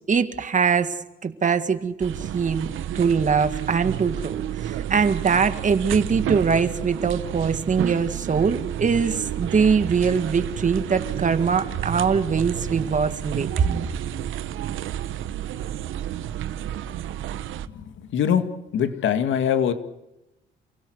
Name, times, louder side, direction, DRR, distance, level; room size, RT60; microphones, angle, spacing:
voice 1, 0.1-0.9 1.2-2.7 3.0-13.8, right 6 dB, 40° right, 10 dB, 1.9 m, -22 dB
sound 1, 2.0-17.7, right 11 dB, 80° right, 1.1 m, -31 dB
voice 2, 18.1-18.4 18.7-19.7, left 8 dB, 75° left, 9 dB, 2.1 m, -22 dB
29.5 x 16.5 x 8.0 m, 0.91 s
cardioid pair, 90°, 20 cm